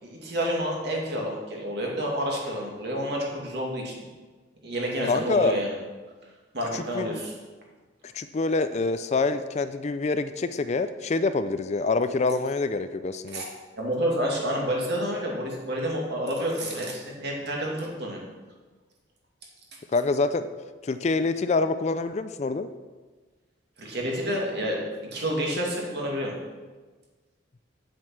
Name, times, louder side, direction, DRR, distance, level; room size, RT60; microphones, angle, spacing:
voice 1, 0.0-4.1 4.6-5.7 6.5-7.3 13.3-13.4 13.8-18.2 23.8-26.3, equal, 55° right, -2 dB, 2.4 m, -29 dB
voice 2, 5.1-5.6 6.7-7.2 8.1-13.4 19.9-20.5 20.8-22.7, left 3 dB, 35° left, 11 dB, 0.4 m, -26 dB
8.3 x 7.5 x 5.9 m, 1.3 s
head